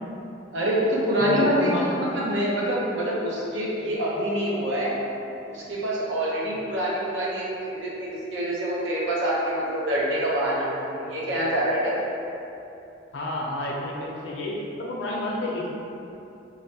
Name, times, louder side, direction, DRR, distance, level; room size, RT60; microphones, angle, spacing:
voice 1, 0.5-5.0 5.5-12.0, equal, 75° right, -5 dB, 0.7 m, -26 dB
voice 2, 1.2-1.8 11.0-11.1 13.1-15.7, left 1 dB, 75° left, -3 dB, 0.5 m, -30 dB
3.1 x 2.5 x 2.7 m, 2.8 s
head